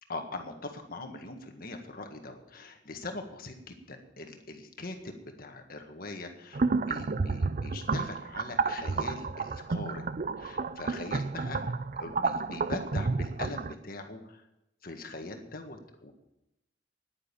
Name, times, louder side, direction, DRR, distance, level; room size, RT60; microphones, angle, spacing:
voice 1, 0.1-10.0 10.4-11.7 12.0-14.4 14.8-16.1, left 2 dB, 55° left, 5 dB, 1.7 m, -41 dB
sound 1, 6.5-13.7, right 4 dB, 45° right, 0.5 m, -31 dB
10.5 x 9.8 x 8.6 m, 0.88 s
head